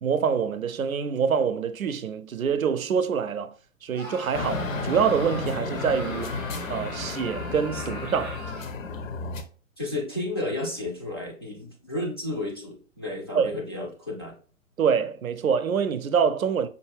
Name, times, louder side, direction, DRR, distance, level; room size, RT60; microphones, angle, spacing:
voice 1, 0.0-3.5 3.8-6.3 6.7-8.4 13.3-13.5 14.8-16.7, right 6 dB, 75° right, 0.5 m, -25 dB
Screaming, 3.9-8.8, right 1 dB, 90° left, 2.1 m, -40 dB
sound 1, 4.3-9.4, left 3 dB, 70° left, 0.7 m, -32 dB
voice 2, 9.8-14.3, left 2 dB, 20° left, 0.4 m, -32 dB
5.2 x 2.3 x 3.3 m
figure-of-eight pair, 125°, 42 cm